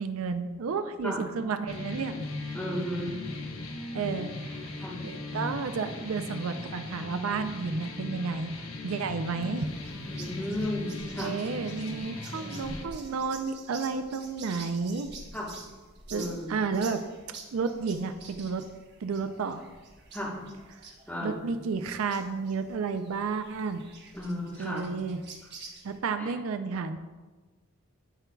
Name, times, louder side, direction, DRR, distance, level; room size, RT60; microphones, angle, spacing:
voice 1, 0.0-2.6 3.9-8.5 8.8-9.7 11.2-15.1 16.1-17.0 17.5-18.7 19.0-19.6 21.2-23.9 24.6-25.2 25.8-27.0, right 5 dB, 80° right, 9 dB, 0.4 m, -32 dB
sound 1, 1.7-12.8, left 2 dB, 80° left, 1.0 m, -38 dB
voice 2, 2.5-3.1 4.8-5.0 10.1-11.3 15.3-15.5 16.1-16.6 20.1-20.3 21.1-21.4 24.1-24.9 26.2-26.3, left 1 dB, 10° left, -6 dB, 1.3 m, -34 dB
sound 2, 9.5-26.0, right 4 dB, 50° right, 1.1 m, -48 dB
Acoustic guitar, 12.3-16.1, right 2 dB, 50° left, 1.6 m, -55 dB
12.5 x 4.5 x 2.3 m, 1.3 s
head